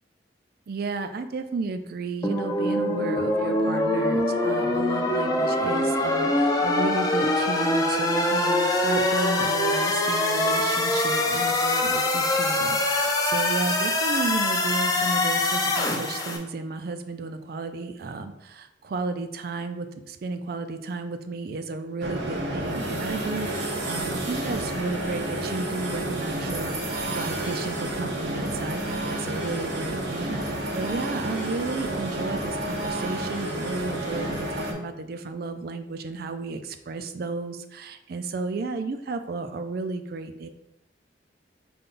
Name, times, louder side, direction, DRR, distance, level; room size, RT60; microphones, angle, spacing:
voice 1, 0.7-40.5, right 3 dB, 55° right, 9 dB, 0.4 m, -33 dB
sound 1, 2.2-16.4, left 2 dB, 20° left, 0.5 m, -24 dB
sound 2, 22.0-34.7, right 1 dB, 90° right, 0.8 m, -30 dB
5.2 x 2.3 x 3.7 m, 0.88 s
head